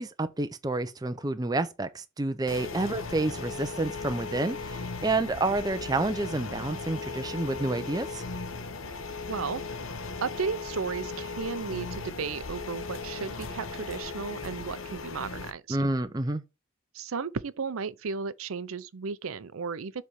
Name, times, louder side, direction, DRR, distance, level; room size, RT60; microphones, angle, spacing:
voice 1, 0.0-8.2 15.7-16.4, right 2 dB, 20° right, 0.5 m, -29 dB
sound 1, 2.5-15.5, left 4 dB, 75° left, 0.9 m, -37 dB
voice 2, 9.3-9.6 10.2-15.8 16.9-20.0, right 5 dB, 85° right, 0.6 m, -34 dB
7.4 x 3.3 x 6.2 m
head